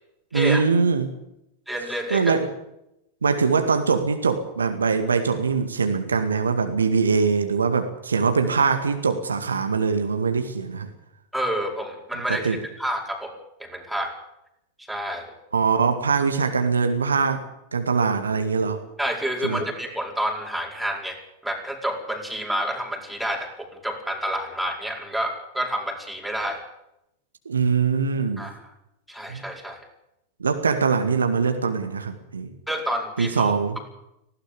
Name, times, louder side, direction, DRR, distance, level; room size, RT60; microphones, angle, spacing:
voice 1, 0.3-1.1 2.1-2.5 3.2-10.9 12.3-12.6 15.5-17.4 17.7-18.8 19.4-19.6 27.5-28.5 29.3-29.4 30.4-32.5 33.2-33.8, right 5 dB, 75° right, 7 dB, 2.0 m, -22 dB
voice 2, 1.7-2.4 11.3-13.3 13.6-14.1 14.9-15.3 19.0-26.6 28.4-28.6 29.1-29.9 32.7-33.5, equal, ahead, 1 dB, 4.8 m, -29 dB
19.0 x 16.5 x 8.3 m, 0.84 s
figure-of-eight pair, 90°, 0 cm